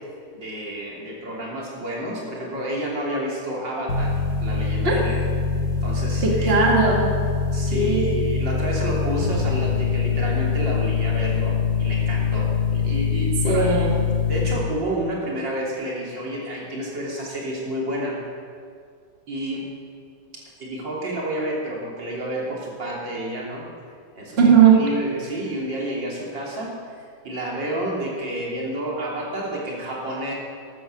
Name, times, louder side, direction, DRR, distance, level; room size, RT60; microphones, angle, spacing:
voice 1, 0.3-5.2 5.8-6.5 7.5-13.7 14.3-18.2 19.3-19.7 20.3-23.7 24.2-24.4 24.7-30.3, right 1 dB, 85° right, -3 dB, 4.0 m, -30 dB
sound 1, 3.9-14.6, left 5 dB, 70° left, 2.9 m, -23 dB
voice 2, 6.2-7.1 7.7-8.1 13.4-14.0 24.4-24.8, right 5 dB, 35° right, -1 dB, 2.2 m, -17 dB
14.0 x 12.5 x 6.8 m, 2.1 s
omnidirectional pair, 2.0 m